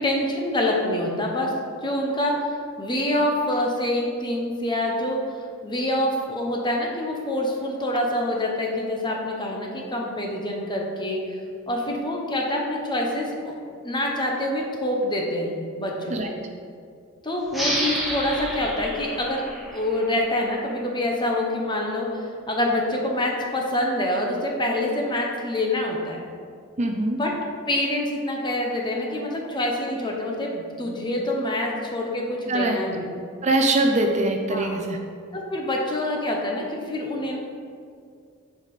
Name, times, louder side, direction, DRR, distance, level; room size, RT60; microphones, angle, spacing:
voice 1, 0.0-1.5 1.8-2.3 2.8-5.2 5.6-11.4 11.7-13.5 13.8-15.5 15.8-16.3 17.2-19.4 19.7-26.2 27.1-27.3 27.7-33.1 34.5-34.7 35.3-37.4, left 1 dB, 20° left, -1 dB, 1.2 m, -26 dB
sound 1, 17.5-20.8, equal, ahead, 1.5 m, -30 dB
voice 2, 26.8-27.2 32.5-32.8 33.4-35.0, right 2 dB, 35° right, 3 dB, 0.6 m, -22 dB
9.7 x 5.0 x 5.0 m, 2.3 s
head